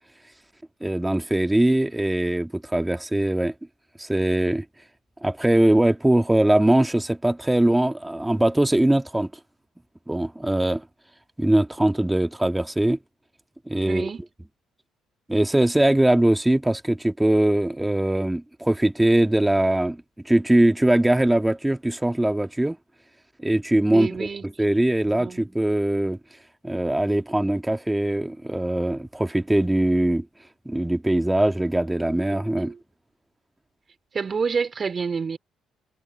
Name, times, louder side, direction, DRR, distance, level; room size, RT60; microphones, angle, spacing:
voice 1, 0.8-3.5 4.0-4.6 5.2-9.3 10.1-10.8 11.4-13.0 13.7-14.1 15.3-22.8 23.4-24.3 24.6-26.2 26.6-30.3 30.7-32.7, right 1 dB, 10° right, 2.2 m, -21 dB
voice 2, 13.8-14.2 23.9-24.5 25.1-25.4 32.6-32.8 34.1-35.4, right 5 dB, 40° right, 4.4 m, -28 dB
hypercardioid pair, 55°, 0 cm